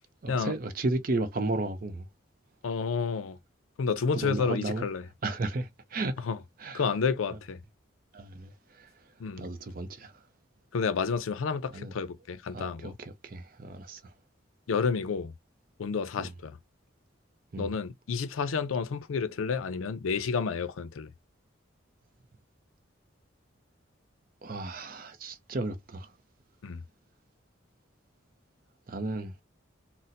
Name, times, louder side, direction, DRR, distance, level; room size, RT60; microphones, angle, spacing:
voice 1, 0.2-2.1 4.1-4.9 5.2-6.2 6.6-6.9 8.1-8.9 9.4-10.2 11.7-11.9 12.5-14.1 16.2-16.3 17.5-17.7 24.4-26.1 28.9-29.3, right 2 dB, 45° right, 0.5 m, -34 dB
voice 2, 2.6-3.4 3.8-5.0 6.2-6.4 6.7-7.6 9.2-9.5 10.7-12.9 14.7-15.3 15.8-16.6 17.6-21.1 26.6-26.8, left 5 dB, 90° left, 0.5 m, -30 dB
4.1 x 2.0 x 2.5 m
head